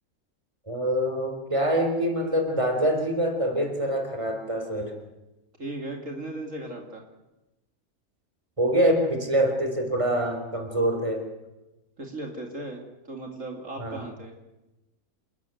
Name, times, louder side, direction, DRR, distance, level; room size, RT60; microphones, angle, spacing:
voice 1, 0.7-5.0 8.6-11.2 13.8-14.0, equal, 20° right, 5 dB, 3.8 m, -25 dB
voice 2, 5.6-7.0 12.0-14.3, right 2 dB, 55° right, 2 dB, 3.0 m, -37 dB
28.5 x 13.5 x 9.3 m, 1.0 s
omnidirectional pair, 1.6 m